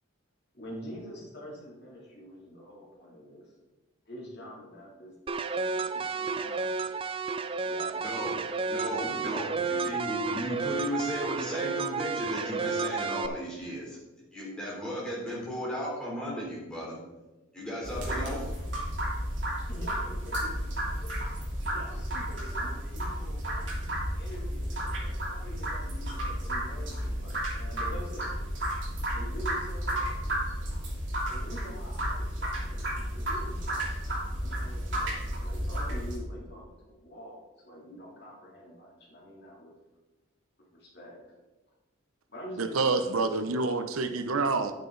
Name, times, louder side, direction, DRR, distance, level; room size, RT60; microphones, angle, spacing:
voice 1, 0.5-3.5 4.0-5.1 5.5-6.7 7.6-8.2 8.8-9.5 10.1-10.3 19.7-20.7 21.0-21.1 21.7-23.7 24.2-28.3 29.1-30.3 31.3-34.1 34.4-39.7 40.7-41.2 42.3-42.8, equal, 50° left, -4 dB, 3.0 m, -46 dB
sound 1, 5.3-13.3, right 4 dB, 25° right, 0.3 m, -32 dB
voice 2, 8.0-8.4 8.7-14.0 14.3-17.0 17.5-18.5, equal, 5° left, -6 dB, 3.4 m, -35 dB
sound 2, 17.8-36.2, equal, 55° right, 3.1 m, -32 dB
voice 3, 42.6-44.7, right 3 dB, 85° right, 9 dB, 0.8 m, -27 dB
9.9 x 8.9 x 4.0 m, 1.1 s
head